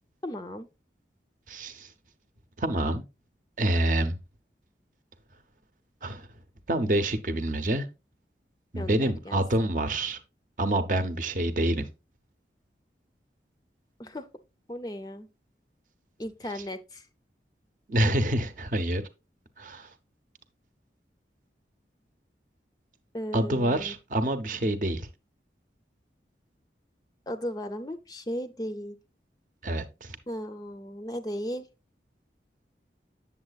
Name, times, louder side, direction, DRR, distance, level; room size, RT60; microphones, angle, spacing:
voice 1, 0.2-0.7 8.8-9.4 14.0-14.3 14.7-15.3 16.2-17.1 23.1-24.0 27.3-29.0 30.3-31.7, equal, 20° left, 0.5 m, -36 dB
voice 2, 1.5-1.9 2.6-3.0 3.6-4.2 6.0-6.3 6.7-7.9 8.7-10.2 10.6-11.9 17.9-19.0 19.6-19.9 23.3-25.1 29.6-30.2, right 1 dB, 45° right, 0.7 m, -27 dB
8.0 x 7.2 x 2.3 m
head